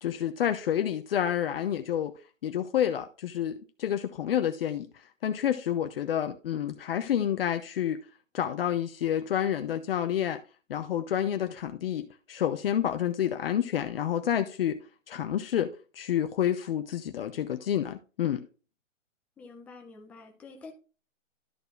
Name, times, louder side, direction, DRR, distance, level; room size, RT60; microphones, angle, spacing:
voice 1, 0.0-2.1 2.4-4.9 5.2-8.0 8.3-10.4 10.7-14.8 15.1-18.5, left 10 dB, 50° left, 0.8 m, -29 dB
voice 2, 19.4-20.7, left 4 dB, 5° left, 0.5 m, -47 dB
13.0 x 4.5 x 3.3 m
hypercardioid pair, 155°, 38 cm